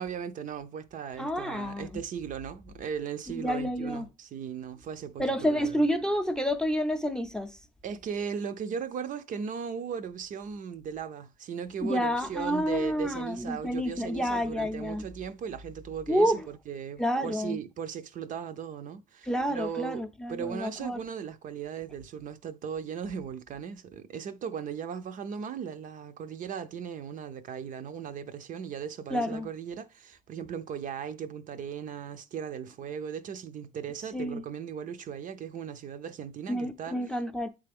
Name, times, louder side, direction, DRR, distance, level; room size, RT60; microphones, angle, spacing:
voice 1, 0.0-5.8 7.8-16.4 16.7-36.9, right 7 dB, 50° right, 0.5 m, -37 dB
voice 2, 1.2-2.0 3.3-4.1 5.2-7.6 11.8-15.0 16.1-16.5 17.0-17.6 19.2-21.0 29.1-29.5 34.1-34.4 36.5-37.5, equal, 5° left, 0.6 m, -29 dB
8.2 x 3.4 x 3.5 m
cardioid pair, 110°, 17 cm